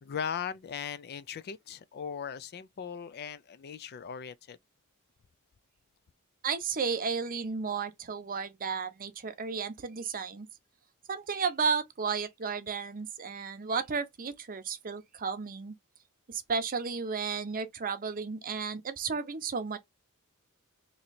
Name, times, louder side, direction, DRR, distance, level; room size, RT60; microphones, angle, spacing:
voice 1, 0.0-4.6, left 7 dB, 45° left, 0.4 m, -38 dB
voice 2, 6.4-10.5 11.1-15.8 16.3-19.8, right 5 dB, 40° right, 0.6 m, -33 dB
3.1 x 2.7 x 4.0 m
head